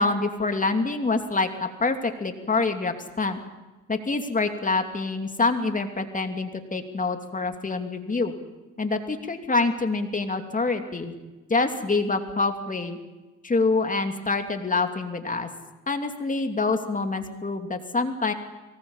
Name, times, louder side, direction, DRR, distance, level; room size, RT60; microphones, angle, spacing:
voice 1, 0.0-3.4 3.9-8.3 8.8-11.1 11.5-13.0 13.4-15.5 15.9-18.3, left 3 dB, 25° left, 6 dB, 2.8 m, -26 dB
24.0 x 19.5 x 7.3 m, 1.2 s
cardioid pair, 90°, 30 cm